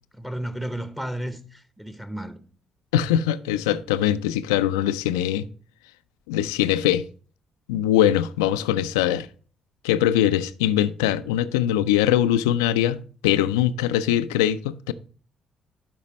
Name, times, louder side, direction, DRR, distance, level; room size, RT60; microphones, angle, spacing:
voice 1, 0.1-2.4, right 1 dB, 5° right, 0.9 m, -33 dB
voice 2, 2.9-5.5 6.3-7.0 7.7-9.3 9.8-14.9, left 11 dB, 80° left, 0.3 m, -22 dB
12.0 x 5.0 x 3.1 m
hypercardioid pair, 45°, 2 cm